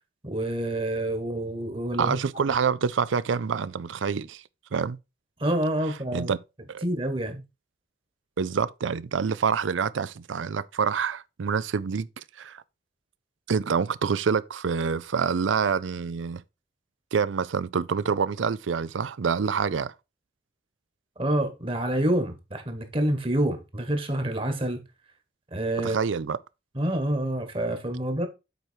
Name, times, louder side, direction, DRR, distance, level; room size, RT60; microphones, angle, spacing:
voice 1, 0.2-2.2 5.4-6.3 6.8-7.4 21.2-24.8 25.5-26.0 26.7-28.3, right 1 dB, 30° right, 1.4 m, -27 dB
voice 2, 2.0-4.4 4.7-5.0 6.1-6.4 6.7-6.8 8.4-12.6 13.5-16.4 17.1-19.9 25.8-26.4, right 6 dB, 90° right, 0.5 m, -27 dB
8.0 x 4.5 x 4.5 m
head